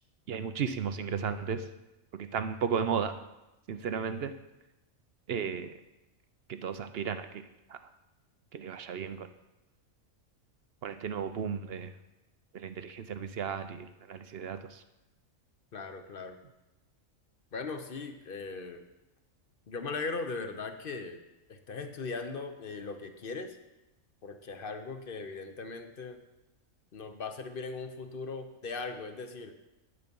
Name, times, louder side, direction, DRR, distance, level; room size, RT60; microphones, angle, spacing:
voice 1, 0.3-1.7 2.1-3.2 3.7-4.3 5.3-5.7 6.5-7.8 8.5-9.3 10.8-11.9 12.5-14.8, right 6 dB, 60° right, 10 dB, 0.7 m, -34 dB
voice 2, 15.7-16.4 17.5-18.8 19.7-21.2 21.5-23.6 24.2-26.2 26.9-29.6, left 4 dB, 45° left, 7 dB, 0.9 m, -39 dB
9.9 x 8.1 x 5.4 m, 0.97 s
omnidirectional pair, 1.4 m